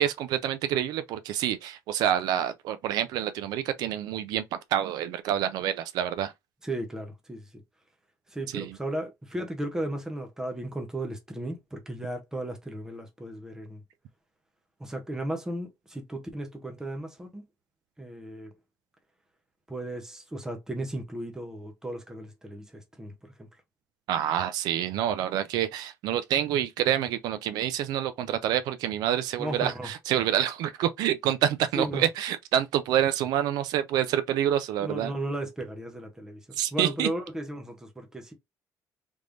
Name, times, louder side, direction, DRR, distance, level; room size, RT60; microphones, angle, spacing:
voice 1, 0.0-4.4 4.7-6.3 8.5-8.8 24.1-35.1 36.6-37.1, right 11 dB, 85° right, 0.5 m, -27 dB
voice 2, 6.6-7.4 8.3-13.8 14.8-17.4 18.0-18.5 19.7-23.1 23.4-23.5 29.4-29.9 31.7-32.0 34.8-36.4 36.7-38.3, right 1 dB, 10° right, 0.8 m, -35 dB
3.5 x 3.2 x 2.5 m
cardioid pair, 175°, 7 cm